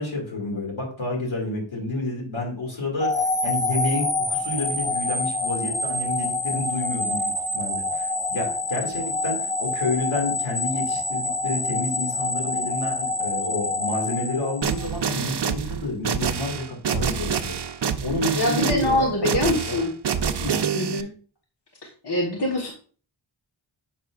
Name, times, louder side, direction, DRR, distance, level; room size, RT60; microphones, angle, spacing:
voice 1, 0.0-4.0 4.3-17.6 18.0-19.8 20.4-20.6, left 2 dB, 80° left, -1 dB, 2.3 m, -29 dB
sound 1, 3.0-15.2, left 3 dB, 15° left, 0.7 m, -27 dB
sound 2, 14.6-21.0, right 7 dB, 60° right, 0.6 m, -27 dB
voice 2, 18.3-19.9 20.7-21.1 22.0-22.7, left 1 dB, 55° left, -2 dB, 1.4 m, -24 dB
7.3 x 5.7 x 2.4 m, 0.41 s
wide cardioid pair, 65°, 47 cm